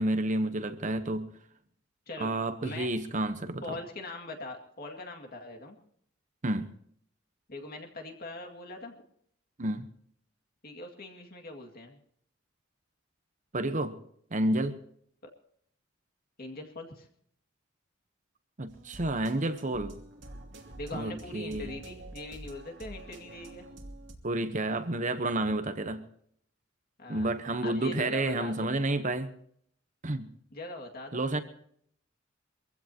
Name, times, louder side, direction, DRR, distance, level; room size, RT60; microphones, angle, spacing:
voice 1, 0.0-1.3 2.2-3.8 6.4-6.7 9.6-9.8 13.5-14.0 14.3-14.8 18.6-20.0 20.9-21.7 24.2-26.0 27.1-29.3 30.0-30.3 31.1-31.4, right 1 dB, 40° right, 1.0 m, -30 dB
voice 2, 3.6-5.8 7.5-8.9 10.6-12.0 16.4-17.1 20.8-23.6 27.0-27.3 27.6-28.7 30.5-31.2, left 2 dB, 50° left, 2.2 m, -41 dB
sound 1, 18.7-24.1, right 1 dB, 65° right, 2.9 m, -47 dB
24.0 x 15.5 x 2.9 m
head